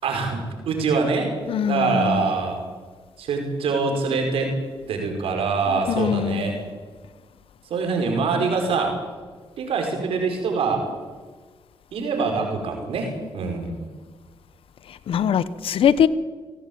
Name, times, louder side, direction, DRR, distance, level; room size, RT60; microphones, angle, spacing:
voice 1, 0.0-1.3 1.7-2.6 3.2-4.5 4.9-6.6 7.7-9.0 9.6-10.9 11.9-13.8, right 4 dB, 85° right, 5.2 m, -24 dB
voice 2, 1.5-2.3 5.7-6.6 14.9-16.1, left 8 dB, 75° left, 1.1 m, -22 dB
25.0 x 17.5 x 8.7 m
cardioid pair, 70°, 9 cm